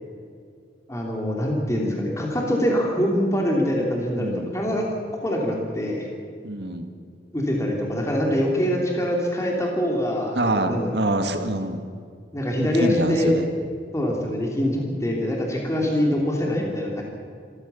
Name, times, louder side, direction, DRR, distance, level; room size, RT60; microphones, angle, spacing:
voice 1, 0.9-4.8 5.2-6.1 7.3-11.0 12.3-13.3 13.9-17.0, equal, 15° left, -1 dB, 3.1 m, -24 dB
voice 2, 4.2-4.5 6.4-6.9 10.4-11.8 12.6-13.5 15.8-16.1, right 1 dB, 65° right, 6 dB, 2.0 m, -26 dB
26.5 x 15.0 x 7.1 m, 2.1 s
head